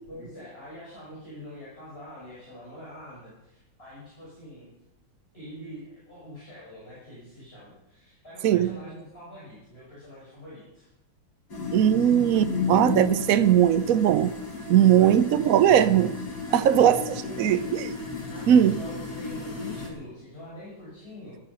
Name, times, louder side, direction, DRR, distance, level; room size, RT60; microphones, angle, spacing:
voice 1, 0.1-4.7 5.3-10.9 15.0-15.8 16.5-16.8 17.2-17.8 18.3-21.4, left 1 dB, 25° left, -7 dB, 6.4 m, -44 dB
voice 2, 8.4-8.8 11.7-14.3 14.7-16.1 16.5-17.0 17.4-17.8 18.5-18.8, right 10 dB, 80° right, 12 dB, 0.7 m, -19 dB
sound 1, 11.5-19.9, left 4 dB, 50° left, 3.5 m, -34 dB
15.5 x 12.5 x 5.6 m, 0.94 s
omnidirectional pair, 2.2 m